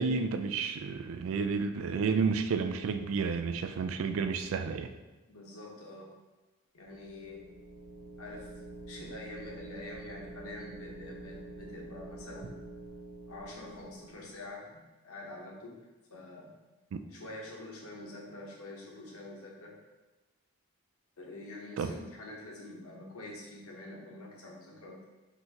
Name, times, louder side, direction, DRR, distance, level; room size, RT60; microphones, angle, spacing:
voice 1, 0.0-4.9 16.9-17.0 21.8-21.9, right 5 dB, 65° right, 8 dB, 0.3 m, -31 dB
voice 2, 5.3-6.1 6.7-7.4 8.2-8.5 8.9-12.6 13.3-16.6 17.1-19.8 21.2-25.1, left 2 dB, 75° left, -2 dB, 1.0 m, -46 dB
sound 1, 6.8-14.5, right 1 dB, 25° right, 1.2 m, -47 dB
5.5 x 2.8 x 2.9 m, 1.1 s
head